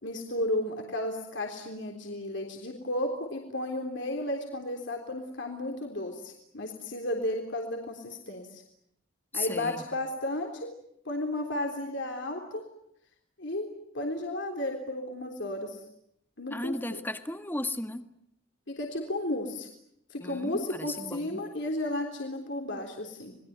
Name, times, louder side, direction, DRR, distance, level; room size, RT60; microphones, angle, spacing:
voice 1, 0.0-8.6 9.3-10.7 11.1-12.6 13.4-13.7 13.9-15.8 16.4-17.0 18.7-19.7 20.1-23.3, left 1 dB, 65° left, 2 dB, 3.6 m, -33 dB
voice 2, 9.3-9.8 16.5-18.1 20.2-21.4, left 1 dB, 10° left, 8 dB, 1.6 m, -35 dB
28.5 x 21.0 x 9.5 m, 0.76 s
head